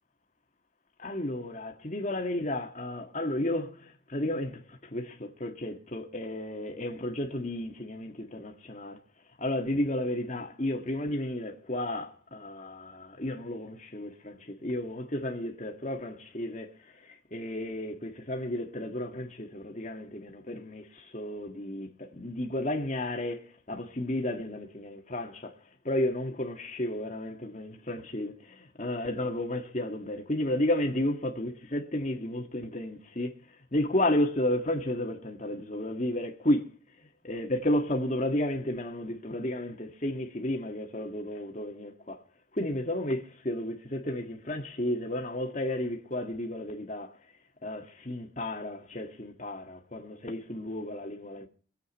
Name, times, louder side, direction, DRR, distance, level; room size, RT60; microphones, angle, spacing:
voice 1, 1.0-9.0 9.4-25.5 25.8-42.2 42.5-47.2 47.6-51.5, left 1 dB, 35° left, 1.9 m, -32 dB
24.5 x 8.3 x 4.3 m
head